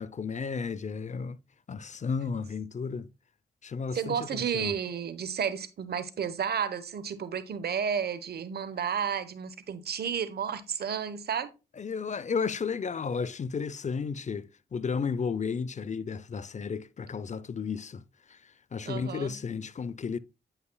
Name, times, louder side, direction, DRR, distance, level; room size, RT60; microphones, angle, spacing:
voice 1, 0.0-1.4 1.7-3.1 3.6-4.7 11.8-18.0 18.3-20.2, left 5 dB, 45° left, 0.5 m, -33 dB
voice 2, 3.9-11.5 18.8-19.4, right 7 dB, 70° right, 0.9 m, -32 dB
9.3 x 5.6 x 2.2 m
supercardioid pair, 45°, 17 cm